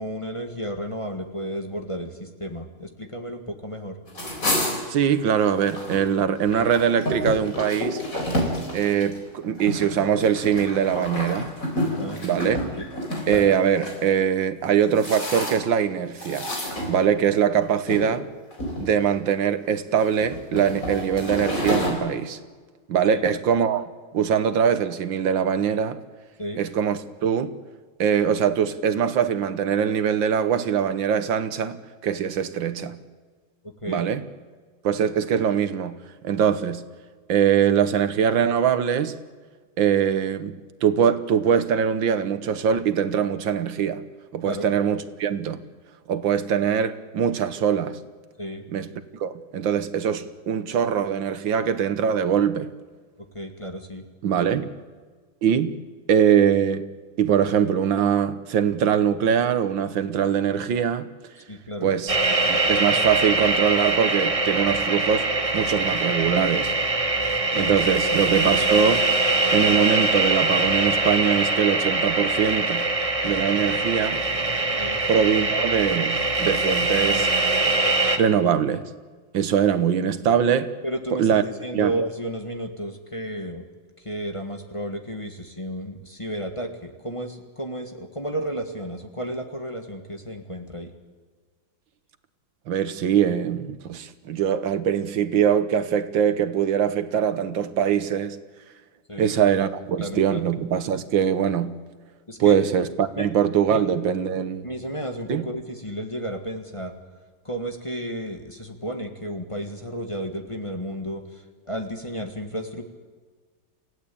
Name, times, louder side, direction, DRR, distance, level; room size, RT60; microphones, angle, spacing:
voice 1, 0.0-4.0 11.9-12.2 12.8-12.9 23.1-23.3 26.4-26.6 33.8-34.1 44.4-44.7 48.4-48.6 53.3-54.0 54.4-54.5 61.5-61.9 67.5-67.8 74.8-75.0 80.8-83.7 84.1-90.9 99.1-99.4 100.0-100.4 102.3-102.6 103.2-103.3 103.7-103.8 104.6-106.9 107.5-111.2 111.7-112.9, equal, 15° left, 1.8 m, -32 dB
sound 1, 4.1-6.0 6.4-14.0 14.6-15.8 16.2-17.4 17.9-18.1 18.5-19.3 19.9-21.9, left 1 dB, 45° left, 4.8 m, -29 dB
voice 2, 4.9-8.0 8.7-11.5 12.2-12.7 13.3-16.5 16.9-18.3 18.8-22.4 22.9-23.9 24.1-26.0 26.6-27.5 28.0-33.0 33.9-34.2 34.8-36.0 36.2-36.8 37.3-39.2 39.8-44.0 44.3-45.6 46.1-48.0 48.7-48.9 49.2-52.7 54.2-54.7 55.4-55.7 56.1-56.8 57.2-61.1 61.8-62.2 62.5-65.2 65.5-66.7 67.5-69.1 69.5-72.9 73.2-74.2 75.1-77.3 78.2-78.8 79.3-80.7 81.1-81.4 81.7-81.9 92.7-98.4 99.2-101.8 102.4-104.7 105.3-105.4, right 8 dB, 80° right, 1.9 m, -22 dB
sound 2, 62.1-78.2, right 2 dB, 20° right, 1.0 m, -23 dB
28.5 x 16.5 x 8.6 m
omnidirectional pair, 2.1 m